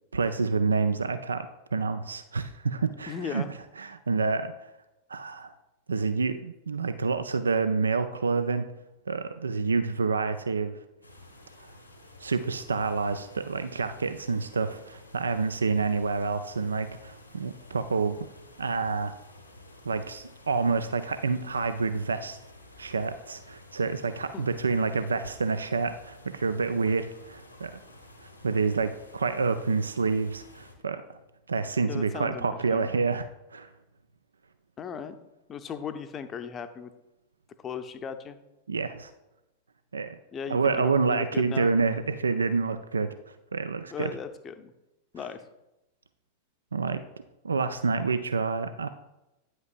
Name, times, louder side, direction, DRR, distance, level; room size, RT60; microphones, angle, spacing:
voice 1, 0.1-3.4 3.8-4.5 5.1-5.5 5.9-8.7 9.1-10.8 12.2-18.2 18.6-19.1 19.9-22.4 22.8-27.8 28.4-31.0 31.5-33.7 38.7-39.1 39.9-40.2 40.5-43.1 43.5-44.1 46.7-47.0 47.4-48.9, right 4 dB, 75° right, 11 dB, 0.3 m, -28 dB
voice 2, 3.1-3.5 24.3-24.4 31.9-32.9 34.8-35.2 35.5-36.9 37.6-38.4 40.3-41.7 43.9-44.7 45.1-45.4, left 7 dB, 25° left, 9 dB, 0.6 m, -37 dB
sound 1, 11.0-30.7, left 2 dB, 85° left, 1.2 m, -52 dB
9.6 x 7.9 x 2.4 m, 0.96 s
figure-of-eight pair, 90°, 0 cm